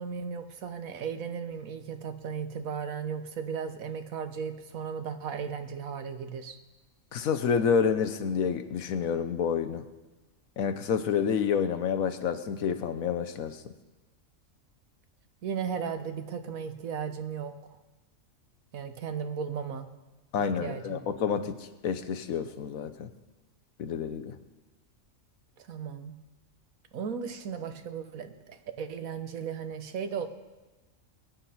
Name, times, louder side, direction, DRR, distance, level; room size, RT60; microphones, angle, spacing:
voice 1, 0.0-6.6 15.4-17.8 18.7-19.9 20.4-21.0 25.6-26.1 26.9-30.3, right 6 dB, 85° right, 8 dB, 1.4 m, -36 dB
voice 2, 7.1-9.8 10.6-13.7 20.3-21.6 21.8-23.1 23.8-24.4, left 6 dB, 85° left, 10 dB, 1.3 m, -28 dB
22.0 x 9.8 x 4.3 m, 1.1 s
omnidirectional pair, 1.4 m